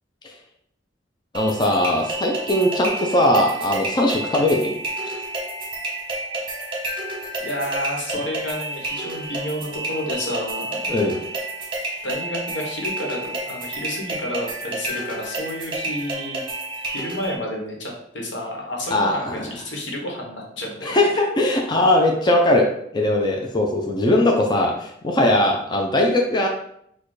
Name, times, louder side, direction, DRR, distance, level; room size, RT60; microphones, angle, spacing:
voice 1, 1.3-4.8 10.9-11.2 18.9-19.5 20.8-22.7 22.9-26.5, left 1 dB, 25° left, 1 dB, 0.4 m, -20 dB
sound 1, 1.3-17.3, right 2 dB, 25° right, 1.1 m, -30 dB
voice 2, 7.4-10.8 12.0-16.5 16.9-21.2, left 1 dB, 80° left, 0 dB, 1.2 m, -30 dB
4.3 x 2.3 x 4.7 m, 0.72 s
head